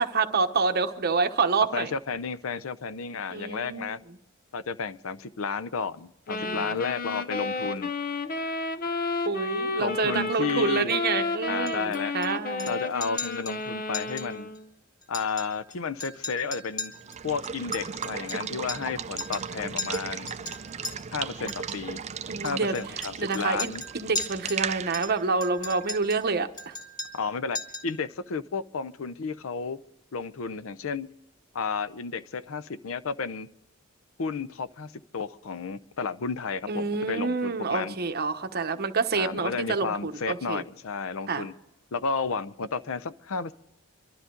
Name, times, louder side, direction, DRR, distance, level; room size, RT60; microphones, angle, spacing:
voice 1, 0.0-1.9 3.3-3.9 6.3-6.7 9.3-12.7 22.3-26.7 36.7-40.6 41.3-41.4, right 4 dB, 50° right, 1.0 m, -28 dB
voice 2, 1.7-4.0 4.5-7.9 9.8-10.9 11.5-12.2 12.7-14.5 15.1-16.9 17.2-20.3 21.1-22.0 22.4-23.8 27.1-27.6 27.8-29.8 30.1-31.1 31.5-33.5 34.2-38.0 39.1-41.5 41.9-43.5, left 5 dB, 70° left, 0.6 m, -32 dB
sound 1, 6.3-14.7, left 3 dB, 45° left, 0.8 m, -31 dB
Chink clink, 11.7-12.3 12.6-12.8 13.0-13.6 13.9-14.3 14.6-14.7 15.0-15.7 16.0-18.9 19.2-19.5 19.8-20.9 21.5-21.8 22.5-24.7 24.9-26.2 26.6-27.3 27.6-27.9, left 3 dB, 20° left, 1.9 m, -37 dB
Water / Water tap faucet / Liquid, 16.9-26.6, right 7 dB, 30° right, 0.5 m, -36 dB
25.5 x 12.5 x 3.8 m
head